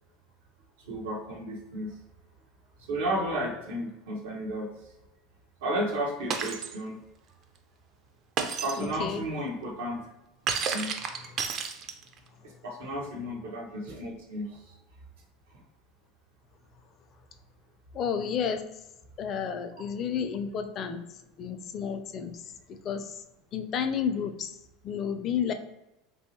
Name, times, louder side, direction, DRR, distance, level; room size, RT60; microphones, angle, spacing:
voice 1, 0.8-1.9 2.9-4.9 5.6-7.0 8.4-10.1 10.7-11.2 12.4-14.8 15.5-15.6, right 1 dB, 80° right, 0 dB, 0.9 m, -33 dB
Shatter, 6.3-6.7 8.4-8.9 10.5-12.2, right 6 dB, 45° right, 0.5 m, -31 dB
voice 2, 8.8-9.2 17.9-18.6 19.2-21.0 21.4-23.2 23.5-24.6 24.8-25.5, left 7 dB, 45° left, 9 dB, 0.4 m, -31 dB
3.0 x 2.7 x 2.8 m, 0.94 s
hypercardioid pair, 95°, 0 cm